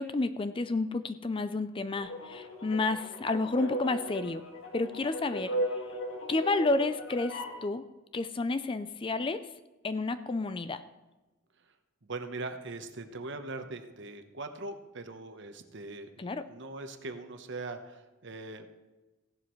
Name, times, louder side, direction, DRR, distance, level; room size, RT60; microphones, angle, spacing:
voice 1, 0.0-4.4 4.7-5.5 6.3-7.8 8.1-9.5 9.8-10.8 16.2-16.4, left 3 dB, 25° left, 11 dB, 0.4 m, -30 dB
sound 1, 2.0-7.6, equal, 80° left, 1.8 m, -37 dB
voice 2, 12.0-18.7, right 3 dB, 60° right, 7 dB, 1.0 m, -41 dB
16.0 x 11.5 x 3.2 m, 1.1 s
head